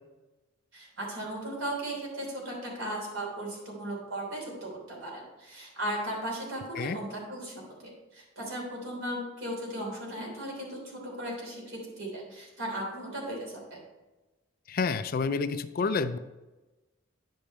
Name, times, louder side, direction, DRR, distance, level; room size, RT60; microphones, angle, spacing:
voice 1, 0.7-13.8, right 1 dB, 70° right, -2 dB, 3.2 m, -37 dB
voice 2, 14.7-16.2, left 4 dB, 45° left, 12 dB, 0.4 m, -29 dB
10.0 x 5.2 x 4.2 m, 1.1 s
head